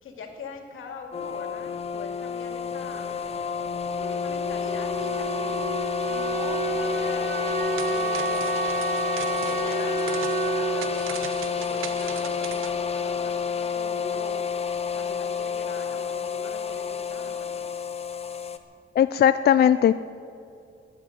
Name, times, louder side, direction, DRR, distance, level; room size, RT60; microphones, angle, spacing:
voice 1, 0.0-3.1 4.1-5.6 6.1-8.5 9.4-10.1 10.4-11.1 11.5-14.5 14.9-17.6, left 5 dB, 90° left, 3 dB, 2.4 m, -41 dB
sound 1, 1.1-18.6, left 6 dB, 30° left, 0.8 m, -30 dB
Wind instrument woodwind instrument, 3.9-12.6, right 2 dB, 60° right, 3.7 m, -30 dB
sound 2, 7.4-12.7, right 9 dB, 80° right, 0.9 m, -40 dB
voice 2, 19.0-19.9, left 10 dB, 50° left, 12 dB, 0.4 m, -18 dB
21.5 x 8.2 x 7.9 m, 2.5 s
wide cardioid pair, 155°, 20 cm